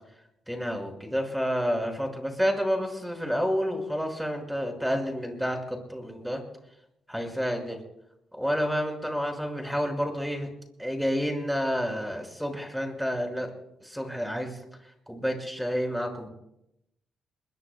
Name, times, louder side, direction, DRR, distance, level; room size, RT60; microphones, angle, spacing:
voice 1, 0.5-6.4 7.1-7.8 8.3-10.5 10.8-13.5 13.8-16.3, equal, ahead, 3 dB, 5.8 m, -29 dB
22.5 x 22.0 x 2.3 m, 0.83 s
supercardioid pair, 55°, 0 cm